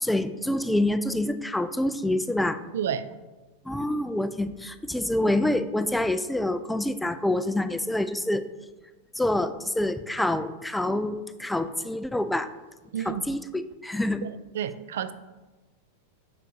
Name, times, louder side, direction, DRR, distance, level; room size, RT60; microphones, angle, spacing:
voice 1, 0.0-2.6 3.7-8.4 9.2-12.5 13.0-14.3, left 1 dB, 5° left, 0.3 m, -27 dB
voice 2, 12.9-13.2 14.2-15.1, right 9 dB, 75° right, 0.4 m, -30 dB
6.6 x 6.3 x 2.7 m
hypercardioid pair, 105°, 0 cm